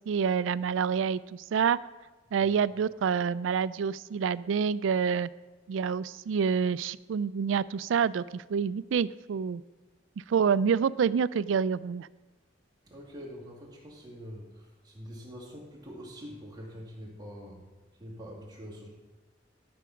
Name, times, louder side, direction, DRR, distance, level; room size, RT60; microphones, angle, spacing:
voice 1, 0.1-1.8 2.3-5.3 5.7-9.6 10.3-12.1, right 6 dB, 85° right, 19 dB, 0.3 m, -27 dB
voice 2, 12.8-17.6 18.0-18.9, equal, 25° right, -3 dB, 2.4 m, -45 dB
12.0 x 6.1 x 5.7 m, 1.3 s
head